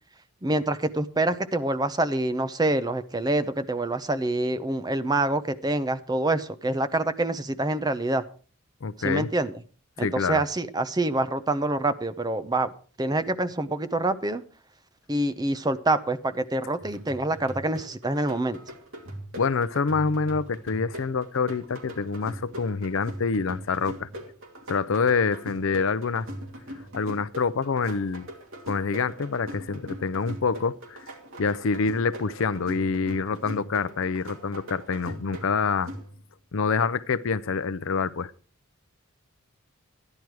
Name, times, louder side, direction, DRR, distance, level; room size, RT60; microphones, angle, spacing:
voice 1, 0.4-8.2 9.0-9.5 10.0-12.7 13.0-14.4 15.1-18.6, right 2 dB, 20° right, 0.6 m, -26 dB
voice 2, 8.8-9.3 10.0-10.4 19.4-24.1 24.7-26.3 26.9-28.3 28.7-31.0 31.4-35.9 36.5-38.3, left 5 dB, 65° left, 0.5 m, -26 dB
sound 1, 16.8-36.5, equal, 65° right, 2.5 m, -41 dB
13.5 x 10.5 x 4.7 m
head